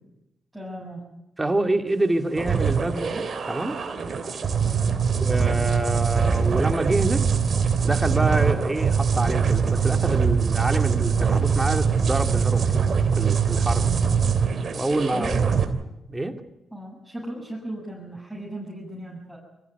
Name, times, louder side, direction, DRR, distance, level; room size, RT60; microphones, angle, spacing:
voice 1, 0.5-1.1 4.6-5.0 13.6-14.1 15.1-15.5 16.7-19.4, right 1 dB, ahead, -5 dB, 7.4 m, -36 dB
voice 2, 1.4-3.8 5.2-7.3 7.8-12.7 13.2-13.9 14.7-15.3 16.1-16.4, right 2 dB, 20° right, 6 dB, 2.6 m, -26 dB
sound 1, 2.4-15.6, right 6 dB, 55° right, 3.0 m, -23 dB
23.0 x 15.5 x 9.6 m, 0.94 s
supercardioid pair, 55°, 0 cm